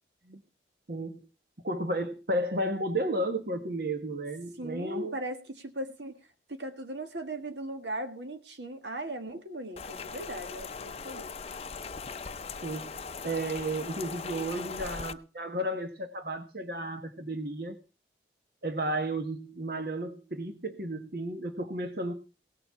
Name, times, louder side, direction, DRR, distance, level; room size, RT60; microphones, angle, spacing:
voice 1, 0.9-1.3 1.6-5.2 12.6-12.9 13.2-17.7 18.6-22.1, right 1 dB, 55° right, 7 dB, 1.3 m, -33 dB
voice 2, 4.6-6.2 6.5-11.3, right 1 dB, 85° right, 7 dB, 1.8 m, -38 dB
Rain, 9.8-15.1, left 5 dB, 35° left, 0.6 m, -39 dB
17.5 x 7.0 x 5.9 m, 0.34 s
head